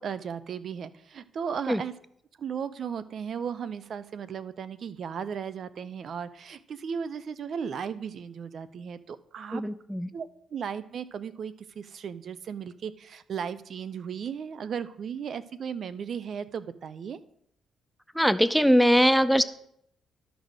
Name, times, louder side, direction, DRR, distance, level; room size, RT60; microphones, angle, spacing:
voice 1, 0.0-1.9 2.4-9.6 10.1-17.2, right 7 dB, 55° right, 15 dB, 0.5 m, -36 dB
voice 2, 9.5-10.1 18.1-19.4, equal, ahead, 15 dB, 0.4 m, -21 dB
12.0 x 4.1 x 6.4 m, 0.70 s
cardioid pair, 90°, 0 cm